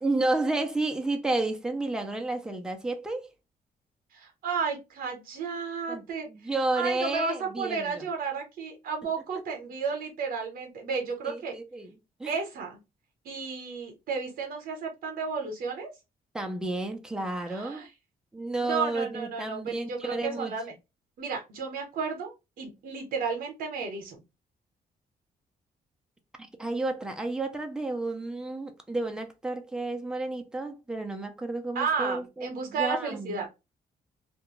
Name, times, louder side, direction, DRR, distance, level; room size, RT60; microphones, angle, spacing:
voice 1, 0.0-3.3 5.9-6.0 6.3-8.1 11.2-11.9 12.2-12.4 16.3-17.8 18.3-20.5 26.4-33.4, right 2 dB, 5° right, 0.5 m, -31 dB
voice 2, 4.1-6.3 6.7-11.6 12.3-12.8 13.2-15.9 17.5-17.9 18.6-20.7 21.2-24.2 31.7-33.5, right 5 dB, 75° right, 0.8 m, -33 dB
2.5 x 2.2 x 2.9 m
cardioid pair, 130°, 15 cm